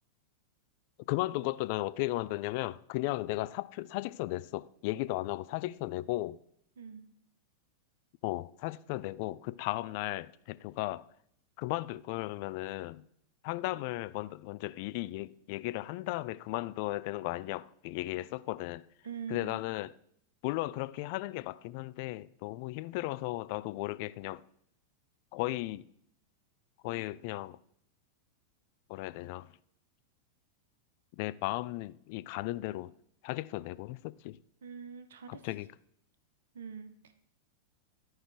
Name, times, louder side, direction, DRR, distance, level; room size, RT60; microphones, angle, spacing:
voice 1, 1.1-6.4 8.2-11.1 11.6-13.0 13.4-18.8 19.3-19.9 20.4-24.4 25.3-25.9 26.8-27.6 28.9-29.5 31.2-32.9 33.2-34.4 35.3-35.7, left 18 dB, 45° left, 0.3 m, -35 dB
voice 2, 6.8-7.1 19.0-19.5 34.6-35.4 36.5-37.1, right 6 dB, 60° right, 0.8 m, -43 dB
12.0 x 4.8 x 4.5 m
figure-of-eight pair, 90°, 0 cm